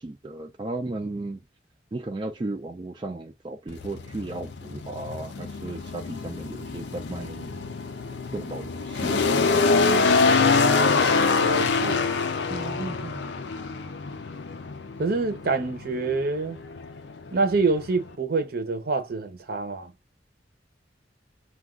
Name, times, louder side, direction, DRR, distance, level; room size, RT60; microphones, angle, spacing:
voice 1, 0.0-1.4 1.9-7.6 8.3-9.7 12.5-13.3, right 2 dB, 25° right, 0.4 m, -35 dB
sound 1, 3.7-18.1, left 4 dB, 65° left, 0.5 m, -25 dB
voice 2, 11.4-12.1 15.0-16.6 17.3-19.9, right 3 dB, 55° right, 0.7 m, -26 dB
2.3 x 2.3 x 3.6 m
head